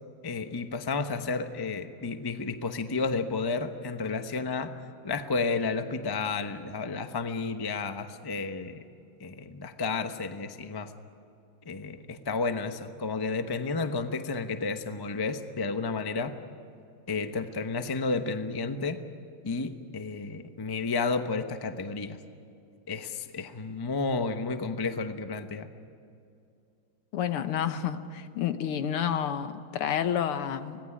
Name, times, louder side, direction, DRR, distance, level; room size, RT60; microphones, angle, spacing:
voice 1, 0.2-4.7 5.0-8.8 9.2-10.9 11.7-16.4 17.1-19.0 19.4-22.2 22.9-25.7, left 4 dB, 35° left, 8 dB, 0.4 m, -31 dB
voice 2, 27.1-30.8, left 9 dB, 90° left, 10 dB, 2.0 m, -29 dB
25.0 x 18.5 x 10.0 m, 2.5 s
omnidirectional pair, 2.4 m